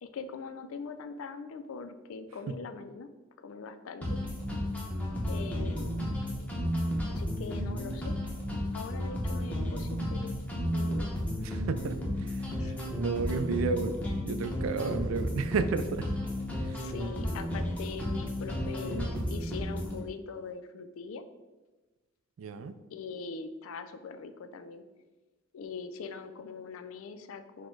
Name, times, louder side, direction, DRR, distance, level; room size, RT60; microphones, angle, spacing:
voice 1, 0.0-3.1 3.4-4.2 5.3-6.1 7.1-8.2 8.7-10.4 10.7-11.1 12.6-12.8 16.8-21.2 22.9-24.8 25.5-27.7, left 5 dB, 85° left, 9 dB, 0.4 m, -42 dB
sound 1, 4.0-20.0, equal, 5° left, 0.8 m, -33 dB
voice 2, 11.4-14.0 14.2-16.1 16.5-16.9 22.4-22.7, right 4 dB, 75° right, 11 dB, 0.3 m, -33 dB
4.2 x 2.2 x 4.4 m, 1.2 s
head